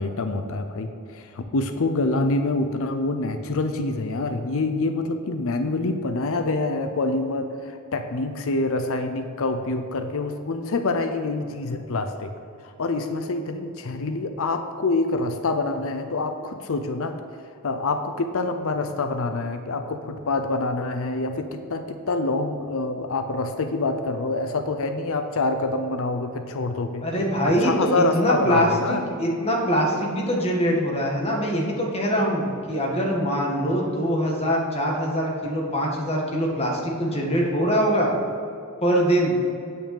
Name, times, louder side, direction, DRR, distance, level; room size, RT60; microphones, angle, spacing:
voice 1, 0.0-12.3 12.6-17.2 17.6-27.0 27.4-29.0, left 2 dB, 65° left, 7 dB, 0.6 m, -26 dB
voice 2, 27.0-38.1 38.8-39.3, equal, 30° left, -2 dB, 1.8 m, -23 dB
8.9 x 5.5 x 7.2 m, 2.5 s
head